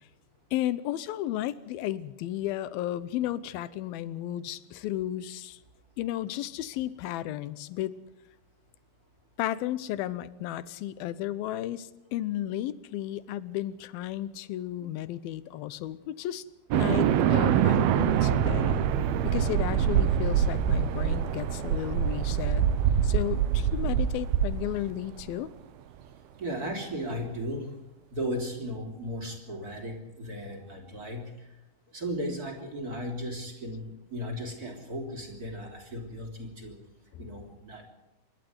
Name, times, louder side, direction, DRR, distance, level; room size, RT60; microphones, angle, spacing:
voice 1, 0.5-5.6 6.0-7.9 9.4-16.4 16.7-18.8 19.2-22.6 23.0-25.5, left 13 dB, 75° left, 17 dB, 2.6 m, -33 dB
sound 1, 16.7-25.2, right 9 dB, 80° right, 2.9 m, -25 dB
voice 2, 26.4-27.8 28.1-31.5 31.9-36.8 37.2-37.9, equal, 25° right, 3 dB, 3.5 m, -36 dB
26.5 x 12.0 x 9.5 m, 0.93 s
omnidirectional pair, 4.4 m